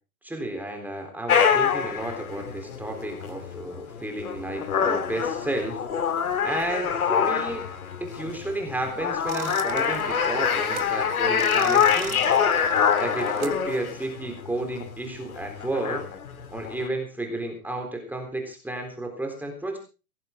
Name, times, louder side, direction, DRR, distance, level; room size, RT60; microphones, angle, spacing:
voice 1, 0.2-5.8 6.4-7.7 8.0-12.2 13.0-16.0 16.5-19.8, right 1 dB, 5° right, 3 dB, 3.7 m, -32 dB
sound 1, 1.3-16.9, left 7 dB, 75° left, 2.8 m, -26 dB
sound 2, 9.3-10.9 11.2-13.6, right 9 dB, 70° right, 2.2 m, -38 dB
19.0 x 14.5 x 3.8 m, 0.33 s
hypercardioid pair, 120°, 44 cm